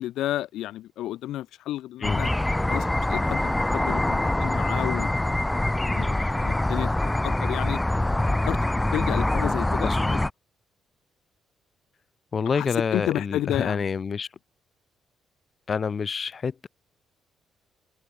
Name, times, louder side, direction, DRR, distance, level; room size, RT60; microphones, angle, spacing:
voice 1, 0.0-2.3 2.7-7.8 8.3-8.6 8.9-10.3 12.5-13.8, left 14 dB, 75° left, 5.4 m, -32 dB
sound 1, 2.0-10.3, left 1 dB, 15° left, 2.1 m, -24 dB
voice 2, 9.8-10.1 12.3-14.3 15.7-16.7, left 6 dB, 45° left, 4.7 m, -27 dB
open air
hypercardioid pair, 50°, 0 cm